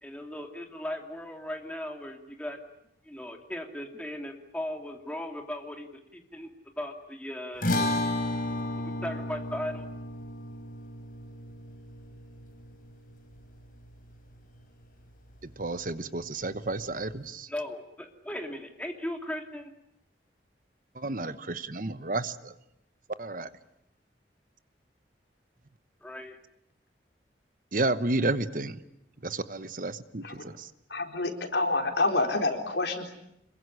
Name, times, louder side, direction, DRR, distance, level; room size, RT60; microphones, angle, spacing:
voice 1, 0.0-2.6 3.0-6.5 6.8-7.7 8.8-9.9 17.5-19.7 26.0-26.4, left 1 dB, 5° left, 3 dB, 2.8 m, -37 dB
sound 1, 7.6-14.1, left 1 dB, 50° left, 4.5 m, -33 dB
voice 2, 15.6-17.5 21.0-22.5 23.2-23.5 27.7-28.8 29.2-30.7, right 2 dB, 50° right, 13 dB, 1.1 m, -31 dB
voice 3, 30.9-33.1, left 2 dB, 75° left, 4 dB, 4.1 m, -28 dB
26.5 x 22.5 x 9.8 m, 0.79 s
head